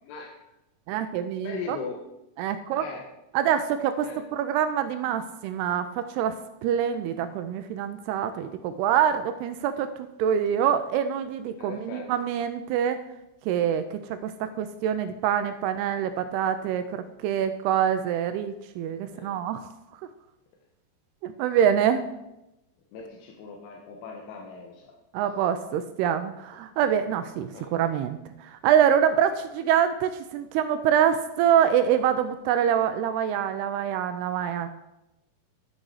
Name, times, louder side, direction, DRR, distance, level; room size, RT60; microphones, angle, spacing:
voice 1, 0.0-0.3 1.4-2.0 2.8-3.0 4.0-4.2 11.6-12.1 19.1-19.4 22.9-24.9 27.5-27.8, left 5 dB, 85° left, 0 dB, 3.1 m, -39 dB
voice 2, 0.9-1.8 2.4-2.8 3.3-4.1 4.3-6.4 6.6-9.9 10.2-13.0 13.5-19.7 21.2-22.0 25.1-34.7, right 9 dB, 80° right, 10 dB, 2.4 m, -25 dB
11.5 x 6.4 x 4.8 m, 0.91 s
omnidirectional pair, 4.8 m